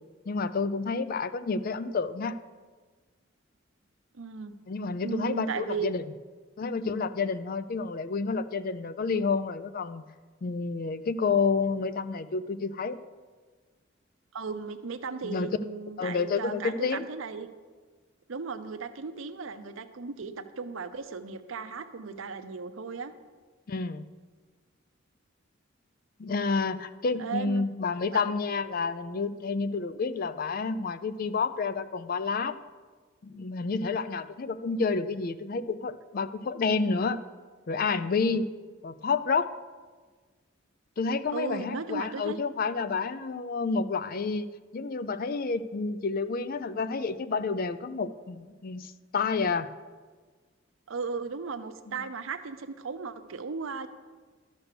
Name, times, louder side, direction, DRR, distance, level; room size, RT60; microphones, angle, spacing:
voice 1, 0.3-2.3 4.7-6.0 6.6-10.0 10.4-13.0 15.2-15.5 16.0-17.0 23.7-24.1 26.2-32.6 33.2-37.2 37.7-38.5 38.8-39.5 41.0-49.7 51.9-52.0, left 4 dB, 45° left, 13 dB, 0.4 m, -29 dB
voice 2, 4.1-4.6 5.0-5.9 14.3-17.5 18.3-23.1 27.2-27.7 28.1-28.3 41.3-42.4 50.9-53.9, right 5 dB, 80° right, 9 dB, 0.7 m, -36 dB
12.0 x 6.1 x 6.7 m, 1.4 s
head